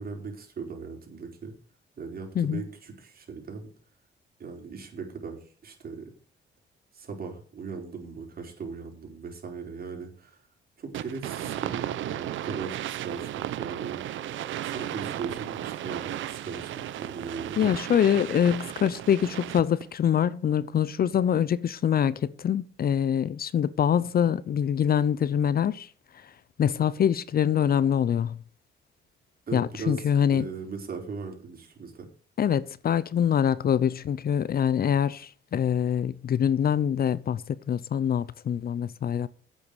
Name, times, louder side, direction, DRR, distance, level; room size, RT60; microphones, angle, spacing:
voice 1, 0.0-1.5 2.0-3.7 4.4-6.1 6.9-10.4 10.8-14.0 14.6-16.7 17.0-17.7 29.5-32.1, right 5 dB, 50° right, 4.7 m, -38 dB
sound 1, 10.9-19.8, right 12 dB, 75° right, 0.9 m, -34 dB
voice 2, 17.6-25.9 26.6-28.4 29.5-30.5 32.4-39.3, left 8 dB, 50° left, 0.7 m, -24 dB
10.5 x 8.4 x 6.8 m
cardioid pair, 90°, 20 cm